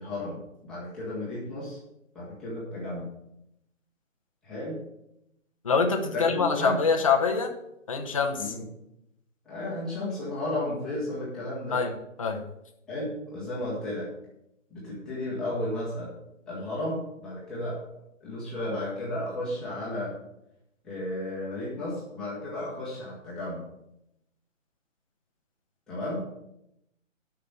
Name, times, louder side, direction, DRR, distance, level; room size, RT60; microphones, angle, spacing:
voice 1, 0.0-1.8 2.1-3.1 4.4-4.8 6.1-6.8 8.4-8.7 9.4-11.8 12.9-14.1 14.7-16.1 16.5-17.8 18.2-20.1 20.8-23.6 25.9-26.2, left 1 dB, ahead, -9 dB, 1.2 m, -33 dB
voice 2, 5.6-7.5 7.9-8.4 11.7-11.9 12.2-12.4, left 5 dB, 25° left, 3 dB, 0.7 m, -24 dB
8.4 x 5.9 x 6.8 m, 0.82 s
hypercardioid pair, 170°, 39 cm